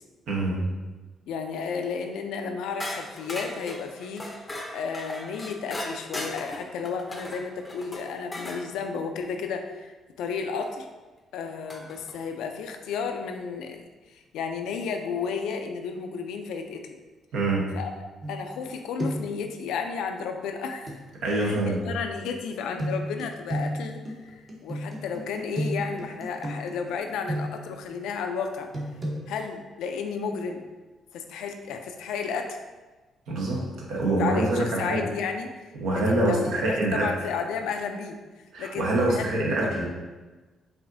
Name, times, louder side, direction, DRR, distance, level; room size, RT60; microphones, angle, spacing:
voice 1, 0.3-0.6 17.3-17.6 21.2-21.8 33.3-35.0 35.7-37.1 38.5-39.8, right 2 dB, 80° right, -3 dB, 0.9 m, -25 dB
voice 2, 1.3-4.2 4.7-9.9 10.2-10.9 11.3-17.0 17.7-21.0 21.3-28.7 29.3-30.6 31.1-32.6 34.2-35.5 35.9-38.2 38.6-39.7, left 5 dB, 85° left, 5 dB, 0.3 m, -32 dB
sound 1, 2.8-8.6 10.6-10.7 11.7-12.1, left 1 dB, 20° left, 0.5 m, -38 dB
sound 2, 18.2-18.7 19.0-19.4 20.9-21.0 22.8-27.8 28.7-29.2, equal, 35° right, 0.9 m, -32 dB
4.8 x 2.6 x 2.6 m, 1.2 s
cardioid pair, 90°, 0 cm